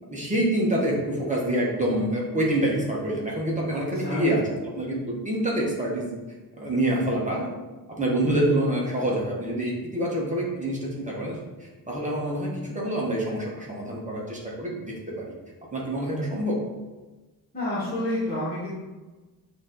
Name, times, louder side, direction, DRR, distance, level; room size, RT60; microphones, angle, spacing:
voice 1, 0.1-6.1 6.6-7.5 7.9-15.3 15.7-16.6, right 1 dB, 20° right, -4 dB, 1.4 m, -26 dB
voice 2, 3.7-4.2 17.5-18.7, left 1 dB, 25° left, -12 dB, 2.0 m, -29 dB
9.0 x 3.0 x 3.9 m, 1.2 s
wide cardioid pair, 140°, 39 cm